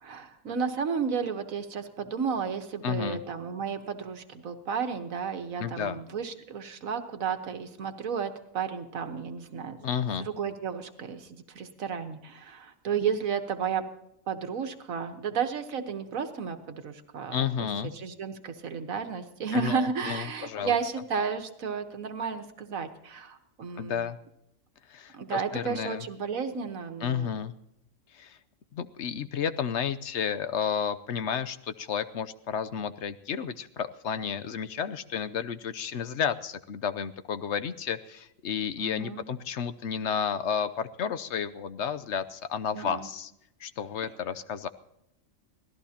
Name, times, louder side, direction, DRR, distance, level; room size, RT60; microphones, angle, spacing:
voice 1, 0.0-9.8 10.2-13.8 14.3-24.0 25.1-27.3 38.8-39.2 42.7-43.1, right 6 dB, 85° right, 7 dB, 1.6 m, -33 dB
voice 2, 2.8-3.2 5.6-6.0 9.8-10.3 17.3-17.9 19.5-20.7 23.8-24.2 24.9-26.0 27.0-27.5 28.1-28.4 28.7-43.3 43.6-44.7, left 7 dB, 65° left, 13 dB, 1.0 m, -32 dB
25.5 x 17.5 x 2.9 m, 0.81 s
omnidirectional pair, 1.4 m